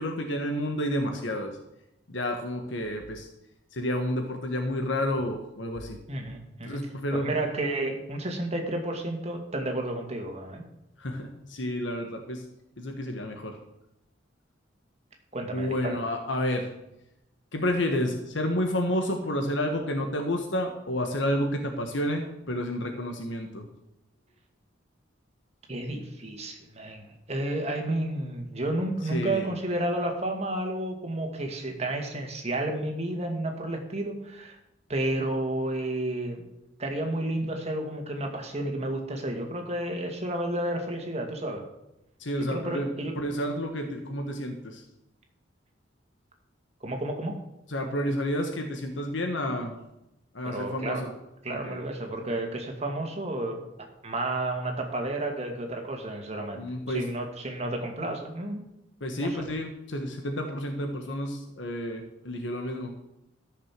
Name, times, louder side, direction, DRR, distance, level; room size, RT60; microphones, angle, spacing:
voice 1, 0.0-1.5 2.1-3.3 3.7-6.0 6.6-7.3 11.0-12.4 12.8-13.6 15.5-16.7 17.5-23.7 29.0-29.5 42.2-42.9 43.2-44.8 47.7-49.8 50.3-51.1 51.6-51.8 56.5-57.0 59.0-63.0, left 1 dB, 70° left, 4 dB, 1.4 m, -30 dB
voice 2, 6.1-6.8 7.1-10.6 15.3-16.0 25.7-34.6 34.9-36.4 36.8-41.6 42.5-43.1 46.8-47.4 50.4-51.1 51.4-53.6 54.0-58.6 59.2-59.4, right 1 dB, 35° right, 2 dB, 2.2 m, -31 dB
13.5 x 6.6 x 7.6 m, 0.88 s
head